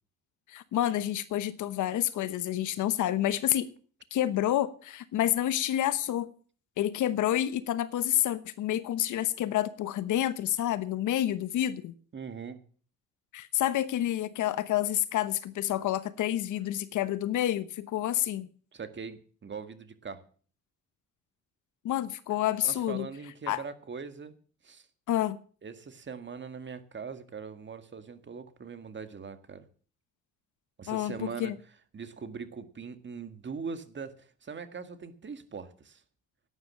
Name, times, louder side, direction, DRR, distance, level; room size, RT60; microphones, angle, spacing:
voice 1, 0.5-3.7 4.1-6.3 6.8-11.9 13.3-18.5 21.8-23.1 23.5-23.6 25.1-25.4 30.9-31.5, left 12 dB, 80° left, 15 dB, 1.1 m, -29 dB
voice 2, 12.1-12.6 18.7-20.2 22.6-24.3 24.6-24.9 25.6-29.7 30.8-31.5 31.9-36.0, right 5 dB, 40° right, 10 dB, 1.9 m, -41 dB
12.0 x 9.5 x 7.6 m, 0.44 s
cardioid pair, 90°, 30 cm